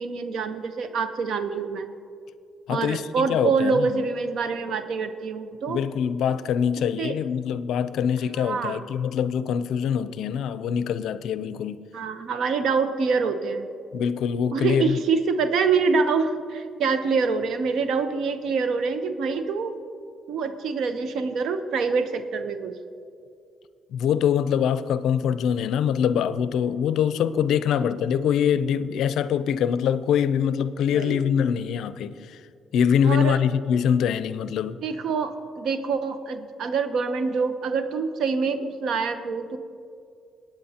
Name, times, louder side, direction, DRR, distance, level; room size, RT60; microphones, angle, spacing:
voice 1, 0.0-1.9 2.7-5.8 7.0-7.2 8.3-8.8 11.9-13.7 14.5-19.7 20.3-22.7 30.9-31.2 33.0-33.4 34.8-39.6, right 5 dB, 70° right, 0.8 m, -25 dB
voice 2, 2.7-4.1 5.7-11.8 13.9-15.0 23.9-32.4 32.7-34.8, left 8 dB, 80° left, 0.4 m, -24 dB
21.0 x 8.8 x 2.9 m
supercardioid pair, 70°, 0 cm